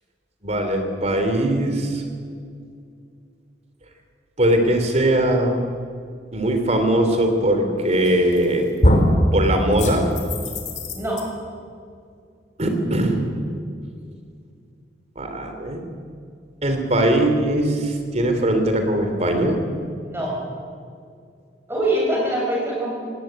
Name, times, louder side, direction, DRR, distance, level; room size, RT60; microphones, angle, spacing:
voice 1, 0.4-2.0 4.4-5.5 6.3-8.7 9.3-10.1 12.6-13.2 15.2-15.8 16.6-19.6, right 1 dB, 40° right, 5 dB, 3.3 m, -20 dB
sound 1, 8.0-8.4 8.8-9.2 9.8-11.2, left 1 dB, 45° left, 3.3 m, -20 dB
voice 2, 10.9-11.3 20.0-20.4 21.7-23.0, right 1 dB, 15° right, -3 dB, 8.0 m, -23 dB
18.0 x 18.0 x 9.4 m, 2.3 s
head